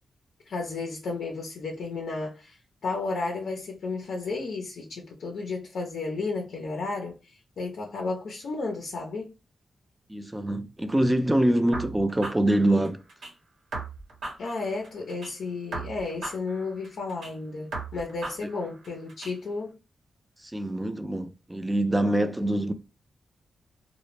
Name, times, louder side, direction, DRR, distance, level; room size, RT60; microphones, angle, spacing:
voice 1, 0.5-2.6 2.8-9.3 14.4-19.8, left 3 dB, 80° left, 0.5 m, -33 dB
voice 2, 10.1-13.0 20.5-22.7, right 1 dB, 15° right, 0.5 m, -24 dB
sound 1, 11.7-13.3 13.7-15.3 15.7-17.3 17.7-19.3, right 3 dB, 80° right, 0.9 m, -38 dB
2.1 x 2.0 x 3.0 m
cardioid pair, 50°, 0 cm